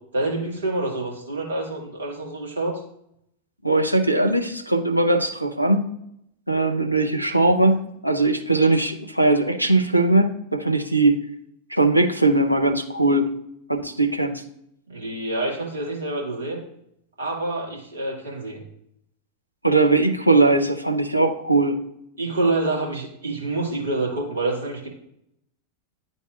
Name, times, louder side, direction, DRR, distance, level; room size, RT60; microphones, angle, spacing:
voice 1, 0.1-2.8 14.9-16.6 17.2-18.6 22.2-24.9, right 2 dB, 70° right, -3 dB, 2.0 m, -27 dB
voice 2, 3.6-5.9 6.5-11.2 11.7-13.3 13.7-14.4 19.6-21.8, right 2 dB, 90° right, 3 dB, 0.6 m, -20 dB
10.5 x 4.0 x 2.4 m, 0.75 s
figure-of-eight pair, 90°, 0 cm